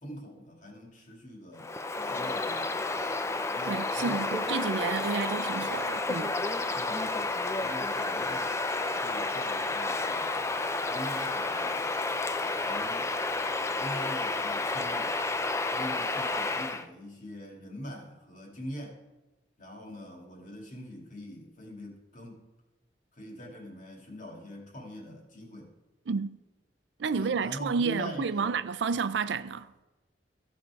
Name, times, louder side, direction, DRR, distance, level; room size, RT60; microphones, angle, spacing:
voice 1, 0.0-1.7 2.1-2.9 3.5-4.5 6.7-8.6 9.0-10.5 10.9-11.9 12.6-13.1 13.8-15.2 15.7-19.0 19.6-22.5 23.1-25.7 27.1-28.6 28.9-29.0, equal, 45° left, 2.1 m, -43 dB
Bird vocalization bird call bird song, 1.6-16.9, left 3 dB, 15° left, 0.4 m, -31 dB
voice 2, 3.7-6.3 26.1-26.4 27.0-29.7, right 5 dB, 80° right, 0.5 m, -30 dB
15.0 x 5.3 x 4.7 m
head